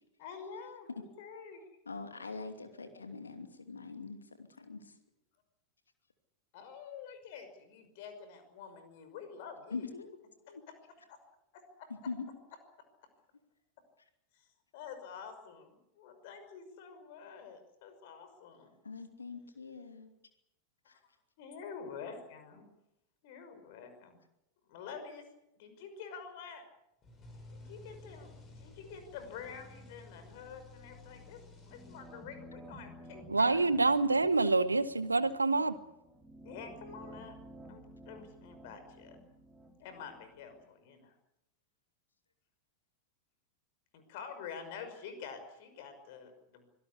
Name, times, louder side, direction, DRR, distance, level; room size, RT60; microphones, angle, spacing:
voice 1, 0.2-1.6 6.5-9.9 10.7-10.8 11.1-11.2 11.5-11.9 14.3-14.5 14.7-18.7 20.8-21.0 21.4-22.7 23.2-24.2 24.7-25.3 25.6-26.6 27.5-28.3 28.6-33.7 34.4-34.6 36.4-37.4 37.7-39.2 39.8-41.1 43.9-46.6, left 6 dB, 50° left, 5.6 m, -48 dB
voice 2, 1.9-4.9 9.7-10.1 10.4-10.6 12.1-12.3 18.8-20.1 20.9-21.0, left 4 dB, 75° left, 2.7 m, -43 dB
sound 1, 27.0-32.5, left 2 dB, 25° left, 7.4 m, -54 dB
sound 2, 31.7-40.6, right 1 dB, ahead, 4.9 m, -53 dB
voice 3, 33.3-35.7, right 3 dB, 80° right, 1.3 m, -27 dB
25.5 x 18.0 x 8.3 m
figure-of-eight pair, 90°, 0 cm